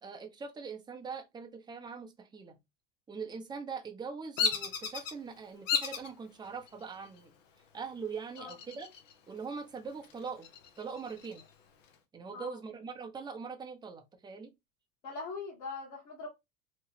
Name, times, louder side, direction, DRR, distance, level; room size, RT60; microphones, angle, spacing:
voice 1, 0.0-2.6 3.1-7.3 7.7-8.9 9.3-10.5 10.8-11.4 12.1-14.5, right 5 dB, 10° right, 0.5 m, -42 dB
Bird vocalization bird call bird song, 4.4-5.1 5.7-6.1 6.7-7.2 8.4-9.1 9.5-9.6 10.0-11.4, left 6 dB, 85° left, 0.8 m, -33 dB
voice 2, 15.0-16.3, left 4 dB, 55° left, 1.2 m, -41 dB
2.9 x 2.2 x 3.1 m
hypercardioid pair, 100°, 37 cm